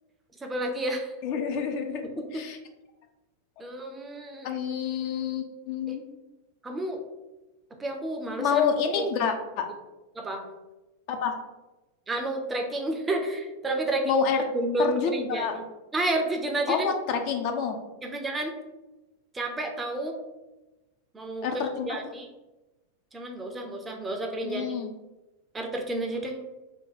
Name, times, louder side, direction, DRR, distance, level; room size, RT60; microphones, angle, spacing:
voice 1, 0.4-1.1 2.0-2.4 3.6-4.5 5.9-6.0 6.6-7.0 7.8-8.6 9.0-9.1 10.1-10.5 12.1-15.6 15.9-16.9 18.0-18.6 19.3-20.2 21.1-22.3 23.1-24.7 25.5-26.4, right 2 dB, 15° right, 3 dB, 0.5 m, -30 dB
voice 2, 1.2-2.0 2.3-2.6 4.4-6.0 8.4-9.7 11.1-11.3 14.1-14.4 14.8-15.6 16.7-17.8 21.4-21.9 24.4-24.9, left 7 dB, 45° left, 5 dB, 0.4 m, -28 dB
2.7 x 2.2 x 4.0 m, 1.1 s
figure-of-eight pair, 90°, 0 cm